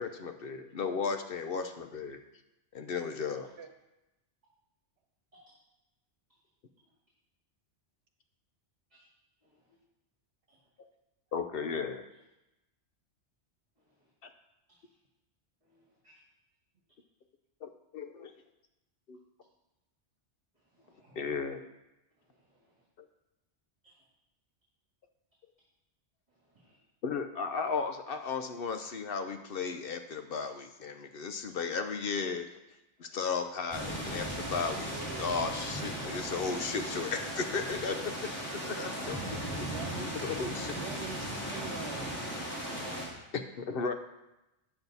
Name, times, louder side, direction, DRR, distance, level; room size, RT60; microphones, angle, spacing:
voice 1, 0.0-2.2 2.7-3.5 11.3-12.0 17.6-18.3 19.1-19.2 21.2-21.7 23.0-23.1 27.0-32.5 33.0-39.2 39.6-39.7 40.0-40.8 43.3-43.9, left 5 dB, 60° left, 7 dB, 0.7 m, -35 dB
voice 2, 9.4-9.8 10.5-10.6 13.8-14.1 14.7-15.0 15.6-16.2 20.5-21.2 22.2-22.8 23.8-24.0 26.3-26.8 33.0-33.2 39.0-39.6, right 1 dB, 35° right, -6 dB, 2.1 m, -57 dB
sound 1, 33.7-43.1, equal, 10° left, 2.7 m, -37 dB
voice 3, 34.9-35.6 38.6-38.9 39.6-40.3 40.7-42.3, right 4 dB, 65° right, 4 dB, 1.3 m, -45 dB
9.0 x 7.1 x 4.0 m, 0.94 s
omnidirectional pair, 1.2 m